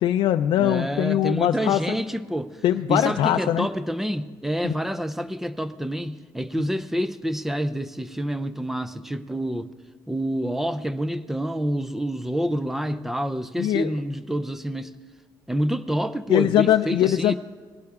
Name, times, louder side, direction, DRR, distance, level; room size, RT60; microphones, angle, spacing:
voice 1, 0.0-1.8 2.6-3.7 4.6-4.7 13.6-13.9 16.3-17.3, left 12 dB, 75° left, 6 dB, 0.4 m, -21 dB
voice 2, 0.6-2.6 2.9-9.7 10.1-15.0 15.5-17.3, equal, 5° right, 12 dB, 0.4 m, -27 dB
19.0 x 11.5 x 3.5 m, 1.5 s
cardioid pair, 175°, 8 cm